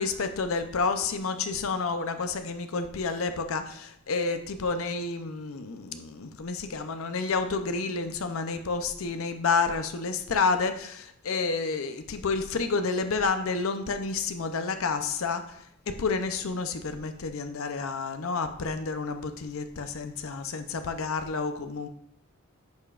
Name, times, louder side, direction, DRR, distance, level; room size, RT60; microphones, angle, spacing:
voice 1, 0.0-15.7 16.0-21.9, left 4 dB, 70° left, 8 dB, 0.6 m, -30 dB
10.5 x 6.8 x 2.4 m, 0.69 s
head